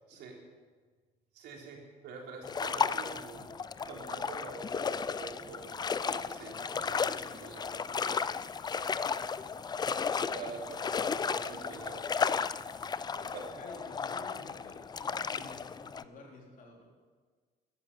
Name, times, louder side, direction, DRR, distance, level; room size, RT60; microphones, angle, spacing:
voice 1, 0.1-0.4 1.3-8.2 8.6-8.7 10.0-12.1 12.8-13.5, right 4 dB, 80° right, 0 dB, 3.5 m, -46 dB
sound 1, 2.4-16.0, left 6 dB, 25° left, 0.4 m, -34 dB
voice 2, 13.5-16.9, left 2 dB, 50° left, 0 dB, 4.0 m, -52 dB
13.5 x 11.0 x 7.2 m, 1.5 s
cardioid pair, 110°, 17 cm